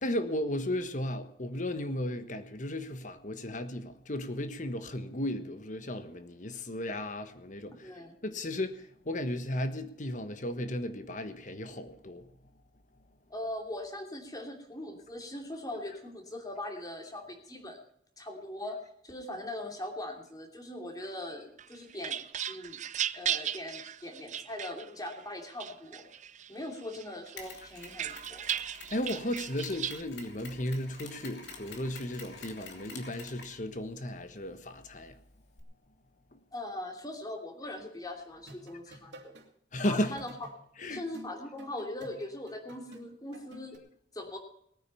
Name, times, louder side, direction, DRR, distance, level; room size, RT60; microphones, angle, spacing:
voice 1, 0.0-7.7 8.2-8.8 9.1-12.2 28.9-35.1 39.7-40.3 40.8-41.1, left 1 dB, 45° left, 1.4 m, -35 dB
voice 2, 7.8-8.1 13.3-17.8 18.2-18.8 19.0-22.8 23.1-26.1 26.5-28.5 36.5-39.3 39.8-40.3 40.9-43.8 44.1-44.4, left 1 dB, 20° left, 2.8 m, -41 dB
sound 1, 21.6-25.2 25.6-26.5 26.9-30.0, right 10 dB, 45° right, 0.5 m, -36 dB
Mechanisms, 27.4-35.6, left 4 dB, 75° left, 3.1 m, -50 dB
sound 2, 38.4-39.5 39.8-43.8, equal, 85° right, 2.7 m, -51 dB
20.0 x 9.3 x 5.5 m
head